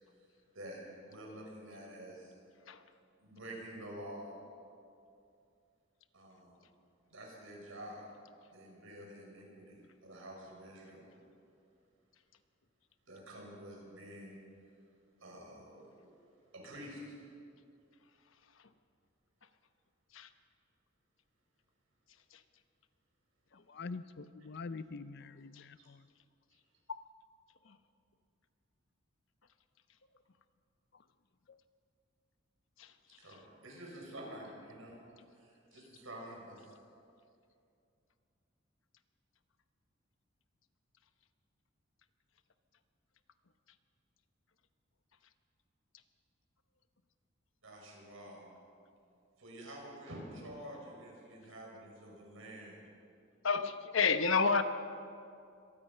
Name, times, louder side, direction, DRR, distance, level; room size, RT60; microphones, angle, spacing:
voice 1, 0.5-2.3 3.2-4.4 6.1-6.6 7.1-8.0 8.5-11.1 13.1-14.4 15.2-16.1 16.5-17.2 25.8-25.9 33.2-35.0 35.4-36.7 47.6-48.6 49.4-52.8, right 1 dB, 75° right, 6.5 m, -49 dB
voice 2, 23.5-26.1 26.9-27.0 31.5-31.6, left 4 dB, 55° left, 0.6 m, -45 dB
voice 3, 53.4-54.6, left 5 dB, 70° left, 1.1 m, -28 dB
25.0 x 19.0 x 5.6 m
head